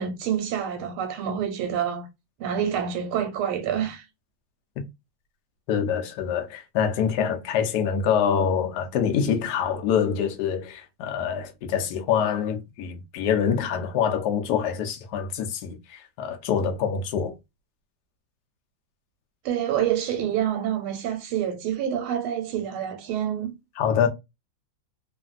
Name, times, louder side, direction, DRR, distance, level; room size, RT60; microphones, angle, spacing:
voice 1, 0.0-2.1 2.4-4.0 19.4-23.5, right 9 dB, 90° right, 1.5 m, -27 dB
voice 2, 5.7-17.3 23.8-24.1, left 7 dB, 80° left, 0.9 m, -25 dB
3.2 x 2.5 x 2.3 m
omnidirectional pair, 2.3 m